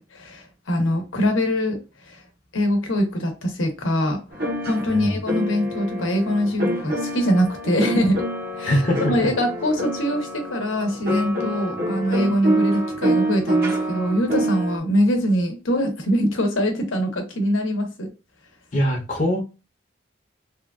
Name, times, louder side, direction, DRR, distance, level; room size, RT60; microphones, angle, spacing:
voice 1, 0.0-2.2 2.5-8.2 8.6-8.8 9.1-18.1, equal, 80° left, 0.9 m, -23 dB
sound 1, 4.3-14.8, right 1 dB, 50° right, 0.9 m, -27 dB
voice 2, 8.7-9.2 18.7-19.4, equal, 40° left, 0.8 m, -22 dB
3.2 x 2.3 x 2.3 m
head